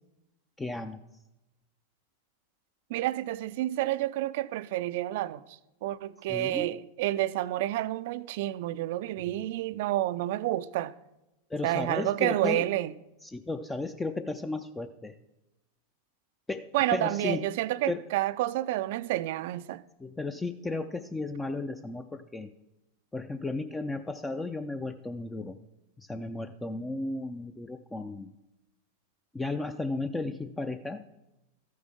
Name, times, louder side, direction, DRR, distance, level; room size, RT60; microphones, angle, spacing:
voice 1, 0.6-1.0 6.3-6.7 11.5-12.6 13.2-15.1 16.5-17.4 17.9-18.0 20.0-22.5 23.1-25.6 26.0-28.3 29.3-31.0, left 3 dB, 10° left, 0.4 m, -34 dB
voice 2, 2.9-5.4 5.8-10.9 11.6-12.9 16.7-19.8, right 15 dB, 50° right, 0.4 m, -29 dB
13.5 x 9.3 x 3.7 m
figure-of-eight pair, 90°, 0 cm